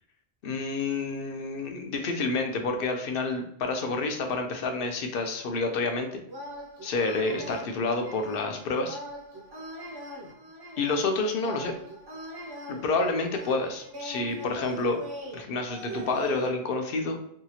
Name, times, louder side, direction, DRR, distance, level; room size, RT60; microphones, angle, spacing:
voice 1, 0.4-6.2 6.8-9.0 10.8-11.7 12.7-15.0 15.3-17.2, left 3 dB, 65° left, 5 dB, 0.7 m, -29 dB
sound 1, 6.3-16.5, equal, 35° right, 0.4 m, -41 dB
2.8 x 2.4 x 2.7 m, 0.71 s
omnidirectional pair, 1.1 m